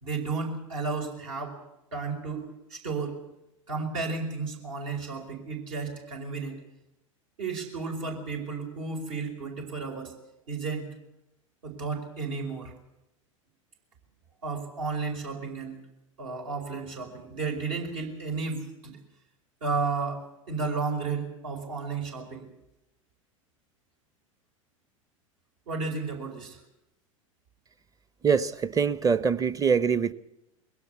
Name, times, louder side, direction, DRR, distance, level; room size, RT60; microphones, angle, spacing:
voice 1, 0.0-1.6 1.9-3.2 3.7-6.6 7.4-10.1 10.5-10.9 11.6-12.7 14.4-15.8 16.2-19.0 19.6-22.4 25.7-26.6, right 4 dB, 70° right, 4.9 m, -33 dB
voice 2, 28.2-30.1, right 6 dB, 20° right, 0.8 m, -24 dB
21.5 x 17.0 x 8.3 m
figure-of-eight pair, 85°, 17 cm